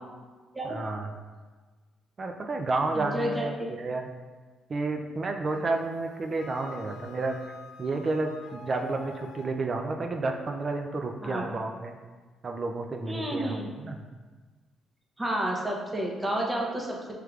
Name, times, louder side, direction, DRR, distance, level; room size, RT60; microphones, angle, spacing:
voice 1, 0.6-1.1 2.2-4.0 4.7-7.4 7.8-12.0 12.4-14.0, right 3 dB, 40° right, 4 dB, 0.4 m, -31 dB
voice 2, 2.9-3.7 11.2-11.4 13.0-13.7 15.2-17.2, right 1 dB, 15° right, -1 dB, 0.8 m, -31 dB
Wind instrument woodwind instrument, 5.5-9.6, left 5 dB, 90° left, 0.4 m, -50 dB
4.7 x 3.3 x 2.4 m, 1.4 s
cardioid pair, 90°, 0 cm